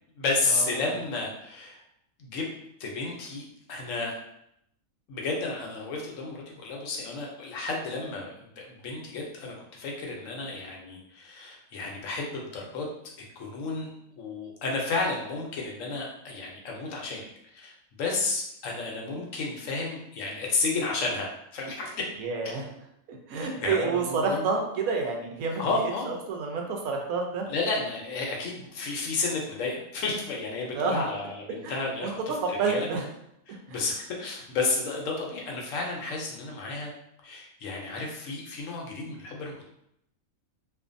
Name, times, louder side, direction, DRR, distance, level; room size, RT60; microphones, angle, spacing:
voice 1, 0.2-1.8 2.2-2.5 2.8-4.1 5.1-12.9 13.4-13.9 14.2-17.3 17.5-17.7 18.0-21.9 23.4-24.5 25.6-26.2 27.5-32.2 32.5-32.9 33.5-36.9 37.2-39.6, left 3 dB, 70° left, -1 dB, 0.9 m, -32 dB
voice 2, 22.2-22.6 23.1-25.7 26.1-27.5 30.7-31.0 31.6-32.1 32.4-33.1 33.5-33.8, right 4 dB, 80° right, 2 dB, 1.0 m, -29 dB
2.5 x 2.5 x 2.5 m, 0.77 s
omnidirectional pair, 1.5 m